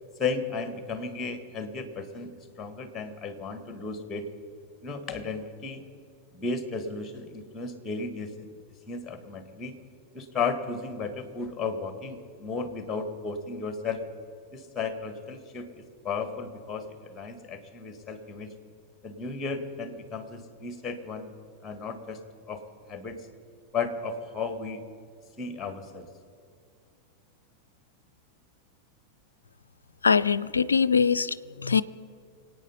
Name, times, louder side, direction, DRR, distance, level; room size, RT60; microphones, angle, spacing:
voice 1, 0.2-2.3 2.6-4.3 4.8-5.8 6.3-8.3 8.9-9.7 10.1-14.0 14.5-15.7 16.0-18.5 19.0-21.3 21.6-22.2 22.5-22.6 22.9-23.2 23.7-24.8 25.4-26.1, left 4 dB, 15° left, 9 dB, 1.7 m, -34 dB
voice 2, 30.0-31.8, left 5 dB, 75° left, 18 dB, 0.4 m, -23 dB
25.0 x 9.0 x 5.5 m, 2.3 s
figure-of-eight pair, 90°, 0 cm